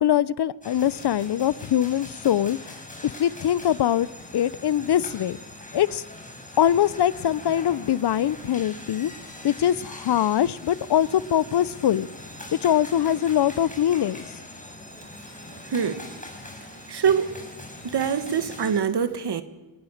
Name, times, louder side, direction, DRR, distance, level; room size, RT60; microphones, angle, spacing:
voice 1, 0.0-2.7 3.0-4.1 4.3-5.4 5.7-6.0 6.6-9.1 9.4-12.1 12.6-14.2, left 10 dB, 60° left, 0.6 m, -22 dB
sound 1, 0.6-18.8, left 1 dB, 15° left, 6.0 m, -42 dB
voice 2, 15.7-16.1 16.9-17.3 17.8-19.4, right 7 dB, 60° right, 1.8 m, -24 dB
27.0 x 18.5 x 6.5 m
wide cardioid pair, 140°, 45 cm